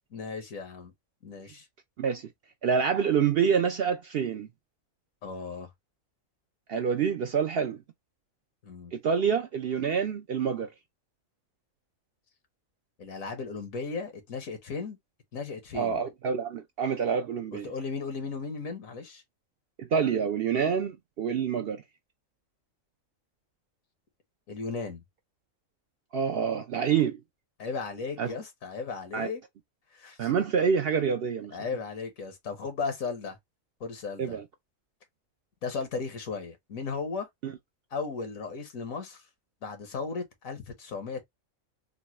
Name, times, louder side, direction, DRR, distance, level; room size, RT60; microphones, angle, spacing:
voice 1, 0.1-0.9 1.2-1.7 5.2-5.7 8.6-8.9 13.0-15.0 15.3-16.0 17.5-19.2 24.5-25.0 27.6-29.4 29.9-30.3 31.5-33.4 33.8-34.4 35.6-37.3 37.9-39.2 39.6-41.2, left 4 dB, 85° left, 1.5 m, -36 dB
voice 2, 2.6-4.5 6.7-7.8 8.9-10.7 15.7-17.7 19.8-21.8 26.1-27.2 28.2-28.3 29.1-29.3 30.2-31.6 34.2-34.4 37.4-37.5, right 6 dB, 60° right, 0.6 m, -27 dB
3.9 x 2.2 x 2.9 m
omnidirectional pair, 1.4 m